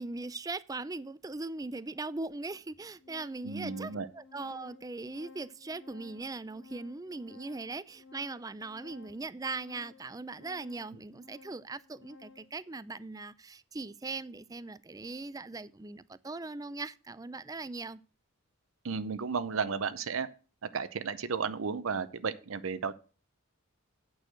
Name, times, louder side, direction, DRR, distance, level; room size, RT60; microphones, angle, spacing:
voice 1, 0.0-18.0, right 3 dB, 15° right, 0.4 m, -40 dB
Organ, 1.3-1.4 2.3-2.4 2.7-12.6, left 4 dB, 90° left, 2.8 m, -55 dB
voice 2, 3.4-4.1 18.8-20.3 20.7-22.9, right 5 dB, 75° right, 0.6 m, -33 dB
9.1 x 6.3 x 6.4 m
head